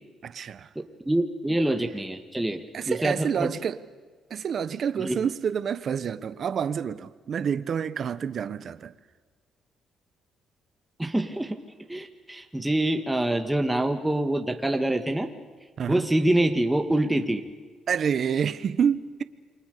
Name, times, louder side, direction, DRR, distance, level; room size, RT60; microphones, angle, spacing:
voice 1, 0.2-0.7 2.7-3.8 4.3-8.9 15.8-16.0 17.9-19.2, right 7 dB, 55° right, 1.2 m, -28 dB
voice 2, 0.8-3.5 5.0-5.2 11.0-11.6 11.9-15.3 15.9-17.4, right 1 dB, 10° right, 1.9 m, -26 dB
28.5 x 25.0 x 6.9 m
cardioid pair, 90°, 0 cm